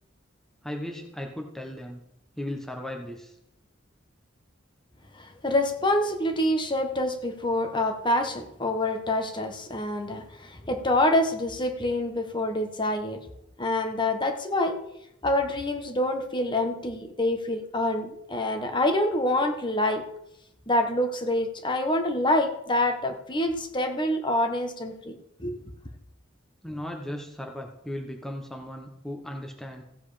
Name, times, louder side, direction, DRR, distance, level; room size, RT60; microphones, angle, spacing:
voice 1, 0.6-2.0 2.4-3.3 26.6-29.8, left 1 dB, ahead, 2 dB, 1.1 m, -36 dB
voice 2, 5.1-13.3 13.6-14.8 15.2-20.0 20.7-25.7, left 1 dB, 25° left, 5 dB, 1.3 m, -26 dB
15.5 x 8.2 x 5.0 m, 0.78 s
head